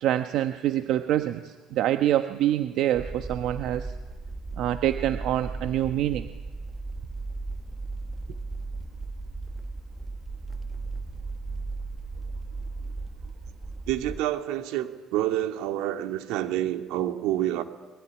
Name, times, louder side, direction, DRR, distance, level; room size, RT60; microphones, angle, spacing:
voice 1, 0.0-3.9 4.6-6.3, right 12 dB, 65° right, 8 dB, 1.0 m, -26 dB
sound 1, 2.9-14.2, right 3 dB, 10° right, 1.3 m, -36 dB
voice 2, 13.9-17.6, right 13 dB, 85° right, 6 dB, 2.2 m, -28 dB
26.0 x 22.0 x 9.9 m, 1.2 s
cardioid pair, 140°, 0 cm